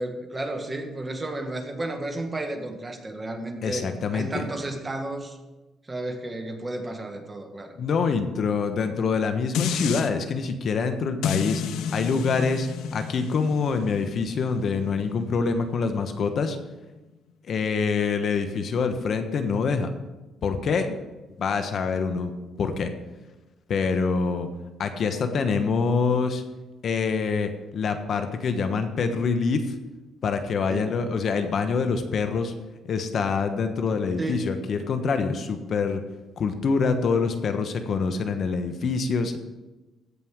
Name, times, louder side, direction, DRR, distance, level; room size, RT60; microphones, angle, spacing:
voice 1, 0.0-5.4 5.9-7.8 30.7-30.9 34.2-34.4, right 2 dB, 25° right, 4 dB, 1.8 m, -32 dB
voice 2, 3.6-4.5 7.8-11.6 11.9-16.6 17.4-19.9 20.4-20.9 21.4-22.3 22.6-22.9 23.7-24.5 24.8-26.4 26.8-29.8 30.2-32.5 32.8-36.0 36.4-39.4, left 5 dB, 60° left, 7 dB, 1.2 m, -25 dB
sound 1, 9.5-10.1 11.2-16.4 16.8-16.9, left 6 dB, 85° left, 0.7 m, -32 dB
15.5 x 5.5 x 6.2 m, 1.1 s
cardioid pair, 90°, 0 cm